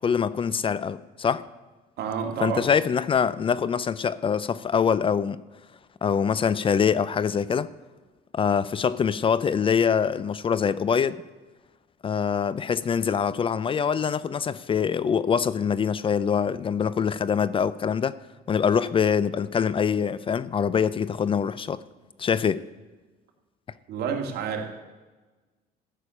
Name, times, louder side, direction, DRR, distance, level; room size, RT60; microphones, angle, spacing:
voice 1, 0.0-1.4 2.4-5.4 6.0-7.7 8.3-11.2 12.0-18.2 18.5-21.8 22.2-22.6, left 7 dB, 30° left, 0.4 m, -24 dB
voice 2, 2.0-2.6 23.9-24.7, right 6 dB, 75° right, 2.4 m, -29 dB
13.5 x 6.5 x 8.5 m
cardioid pair, 110°, 17 cm